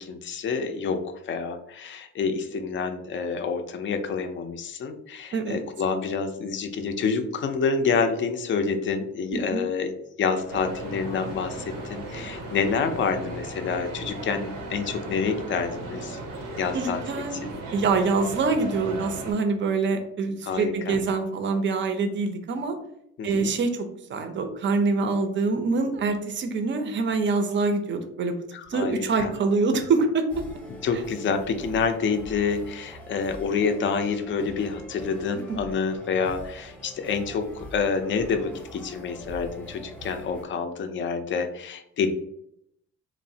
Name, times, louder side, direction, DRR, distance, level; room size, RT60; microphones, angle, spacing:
voice 1, 0.0-9.9 10.2-16.2 16.6-17.4 20.4-21.0 23.2-23.5 28.5-29.3 30.8-42.1, left 5 dB, 40° left, 7 dB, 0.4 m, -28 dB
voice 2, 5.3-5.6 9.3-9.6 16.7-22.8 23.2-28.3 28.7-30.3 35.5-35.6, right 4 dB, 40° right, 7 dB, 0.5 m, -25 dB
sound 1, 10.3-17.4, left 4 dB, 90° left, 0.5 m, -46 dB
sound 2, 10.5-19.3, right 3 dB, 85° right, 0.6 m, -37 dB
sound 3, 30.3-40.4, equal, 5° left, 0.7 m, -43 dB
3.0 x 2.1 x 2.6 m, 0.75 s
cardioid pair, 90°, 30 cm